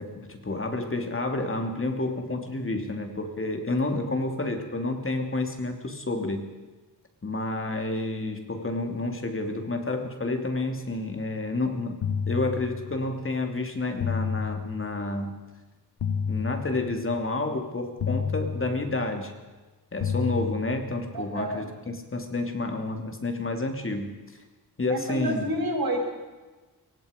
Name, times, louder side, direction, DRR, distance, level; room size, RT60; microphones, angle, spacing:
voice 1, 0.0-6.5 7.2-12.0 12.3-15.4 16.3-19.3 19.9-24.2 24.8-25.5, left 2 dB, 35° left, 4 dB, 2.9 m, -30 dB
sound 1, 12.0-13.2 14.0-15.2 16.0-17.2 18.0-19.2 20.0-21.2, left 6 dB, 85° left, 1.2 m, -31 dB
voice 2, 21.1-21.6 24.9-26.0, right 1 dB, 70° right, 0 dB, 7.6 m, -29 dB
27.0 x 23.5 x 5.2 m, 1.2 s
wide cardioid pair, 140°, 38 cm